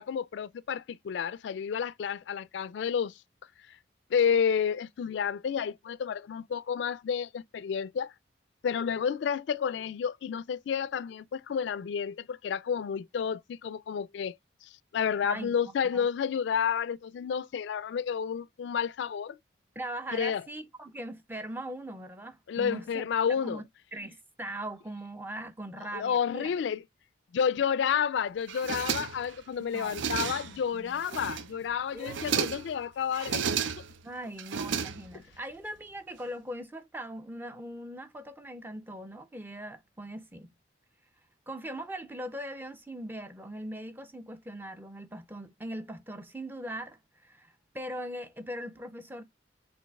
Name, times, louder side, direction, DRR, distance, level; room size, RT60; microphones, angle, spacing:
voice 1, 0.0-3.1 4.1-8.1 8.6-14.4 14.6-19.4 20.1-20.4 22.5-23.6 25.9-26.8 27.3-33.5, left 7 dB, 70° left, 0.3 m, -30 dB
voice 2, 15.2-15.5 15.9-16.1 19.8-23.0 23.4-23.6 23.9-26.5 29.6-31.0 31.9-32.5 34.0-40.5 41.5-49.2, right 1 dB, 10° right, 0.4 m, -40 dB
sound 1, 28.5-29.4 29.7-30.6 31.0-31.6 32.0-32.7 33.1-34.0 34.4-35.4, right 7 dB, 80° right, 0.5 m, -33 dB
5.1 x 3.9 x 2.2 m
head